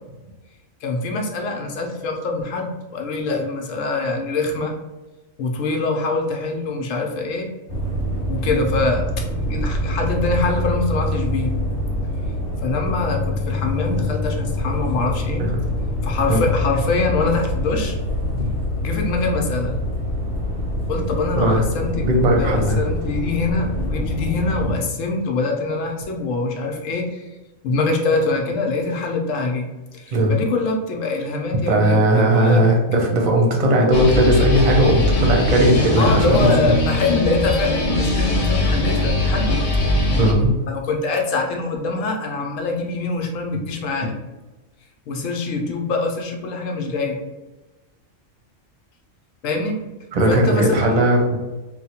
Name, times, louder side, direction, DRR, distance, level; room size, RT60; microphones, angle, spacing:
voice 1, 0.8-4.7 5.4-7.5 8.3-11.5 12.6-15.5 16.0-18.0 18.8-19.7 20.9-22.0 22.4-27.4 27.6-29.7 29.9-32.6 36.0-39.6 40.7-44.1 45.1-47.2 49.4-49.8 50.3-51.0, left 3 dB, 75° left, 2 dB, 1.0 m, -24 dB
sound 1, 7.7-24.7, left 1 dB, 20° left, 1.2 m, -25 dB
voice 2, 21.9-22.8 30.1-30.3 31.7-36.4 40.2-40.5 50.1-51.4, right 1 dB, 40° right, 0 dB, 0.7 m, -17 dB
sound 2, 33.9-40.3, left 1 dB, 50° left, 0.5 m, -20 dB
3.1 x 2.1 x 4.1 m, 1.1 s
omnidirectional pair, 1.4 m